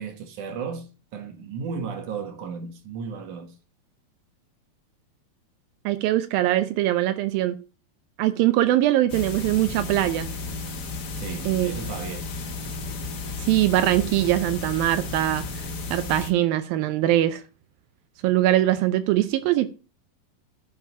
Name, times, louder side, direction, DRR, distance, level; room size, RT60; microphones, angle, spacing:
voice 1, 0.0-3.6 11.1-12.3, right 5 dB, 65° right, 2.8 m, -35 dB
voice 2, 5.9-7.6 8.2-10.3 11.5-11.8 13.4-15.5 15.9-17.4 18.2-19.7, right 14 dB, 80° right, 2.5 m, -22 dB
sound 1, 9.1-16.3, left 3 dB, 80° left, 0.9 m, -33 dB
11.5 x 6.5 x 5.6 m
omnidirectional pair, 4.1 m